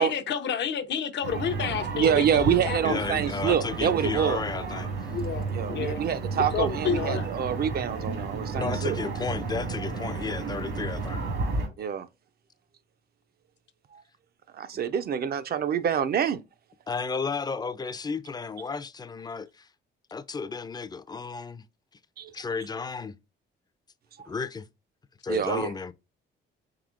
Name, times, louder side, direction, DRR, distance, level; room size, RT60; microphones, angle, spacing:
voice 1, 0.0-3.0 5.1-6.0 6.5-7.3, left 8 dB, 65° left, 0.6 m, -30 dB
sound 1, 1.2-11.7, right 4 dB, 80° right, 1.8 m, -32 dB
voice 2, 1.9-4.4 5.5-9.0 11.8-12.1 13.9-14.0 14.5-16.4 22.2-22.3 24.2-24.3 25.3-25.7, right 8 dB, 50° right, 0.4 m, -26 dB
voice 3, 2.8-5.1 8.6-11.2 16.9-19.7 20.1-21.7 22.3-23.2 24.3-24.7 25.2-25.9, left 5 dB, 20° left, 0.4 m, -33 dB
4.8 x 3.5 x 2.4 m
cardioid pair, 90°, 20 cm